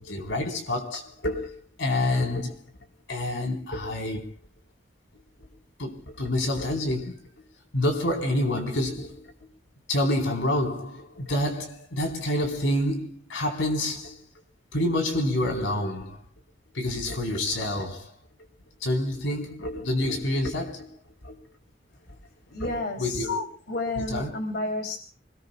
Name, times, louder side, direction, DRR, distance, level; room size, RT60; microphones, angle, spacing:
voice 1, 0.0-1.5 1.8-2.6 3.1-4.3 5.8-7.3 7.7-9.3 9.9-14.2 14.7-16.2 16.7-18.1 18.8-21.4 22.6-23.8 24.1-24.3, left 1 dB, 90° left, 4.1 m, -28 dB
voice 2, 22.5-23.3 23.7-25.0, left 2 dB, 65° left, 3.1 m, -31 dB
27.5 x 20.5 x 2.3 m
head